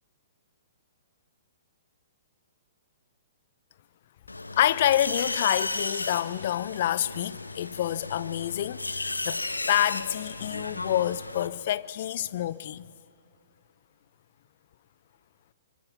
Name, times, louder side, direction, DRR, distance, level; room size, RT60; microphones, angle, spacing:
sound 1, 4.3-11.5, left 2 dB, 85° left, 1.1 m, -34 dB
voice 1, 4.5-9.4 9.7-12.9, left 12 dB, 50° left, 0.5 m, -27 dB
27.5 x 26.0 x 6.0 m
figure-of-eight pair, 115°, 0 cm